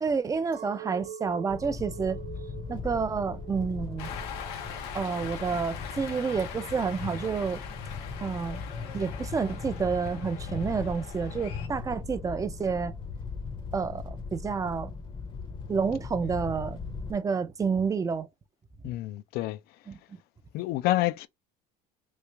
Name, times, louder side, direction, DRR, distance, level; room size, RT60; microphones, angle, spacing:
voice 1, 0.0-2.2 2.7-4.2 4.9-7.6 8.2-8.6 8.9-12.9 13.7-14.9 15.7-16.8 17.1-18.3 19.9-20.0, right 5 dB, 20° right, 0.4 m, -29 dB
Chink clink, 0.5-6.0, right 9 dB, 60° right, 0.9 m, -45 dB
sound 1, 1.5-17.1, left 4 dB, 25° left, 0.7 m, -39 dB
Cheering, 4.0-11.7, left 8 dB, 90° left, 0.9 m, -42 dB
voice 2, 18.8-19.6 20.5-21.3, left 16 dB, 60° left, 0.4 m, -28 dB
3.1 x 2.4 x 3.3 m
supercardioid pair, 110°, 18 cm